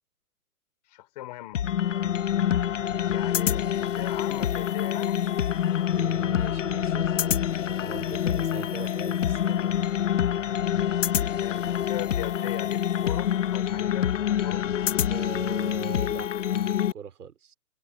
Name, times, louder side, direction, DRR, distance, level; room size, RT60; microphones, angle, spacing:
voice 1, 0.9-1.7 3.1-5.2 11.2-14.7, left 17 dB, 25° left, 4.1 m, -39 dB
sound 1, 1.5-16.9, left 10 dB, 55° left, 1.2 m, -26 dB
voice 2, 5.9-10.0 15.1-17.5, right 7 dB, 75° right, 3.8 m, -41 dB
hypercardioid pair, 180°, 45 cm